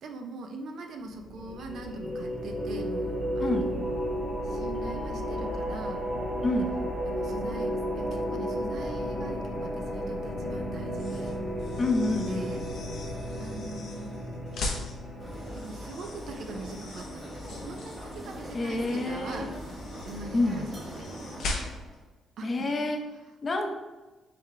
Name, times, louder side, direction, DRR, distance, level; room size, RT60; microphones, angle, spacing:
voice 1, 0.0-4.1 4.4-6.0 7.0-11.4 12.3-12.6 13.4-14.3 15.5-19.8 20.0-21.5 22.4-22.9, right 3 dB, 70° right, 4 dB, 0.6 m, -42 dB
sound 1, 1.1-16.5, equal, 5° right, 1.1 m, -33 dB
voice 2, 3.4-3.8 6.4-6.8 11.8-12.6 18.5-19.5 20.3-20.7 22.4-23.0 23.4-23.7, left 2 dB, 35° left, 4 dB, 0.6 m, -28 dB
sound 2, 10.9-22.0, left 2 dB, 70° left, 0.7 m, -41 dB
sound 3, 15.2-22.0, equal, 35° right, 1.2 m, -41 dB
3.7 x 3.6 x 3.2 m, 1.2 s
cardioid pair, 90°, 0 cm